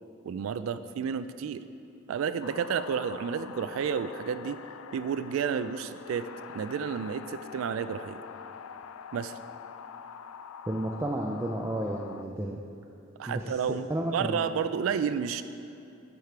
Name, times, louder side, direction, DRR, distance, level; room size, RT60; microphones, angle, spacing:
voice 1, 0.2-1.6 2.1-4.6 4.9-6.3 6.5-8.2 9.1-9.4 13.2-13.9 14.1-15.4, right 7 dB, 85° right, 12 dB, 0.3 m, -31 dB
sound 1, 2.4-12.2, left 7 dB, 80° left, 0.3 m, -45 dB
voice 2, 10.7-12.6 13.3-13.6 13.9-14.5, right 1 dB, 15° right, 0 dB, 0.4 m, -32 dB
10.5 x 4.9 x 4.5 m, 2.7 s
head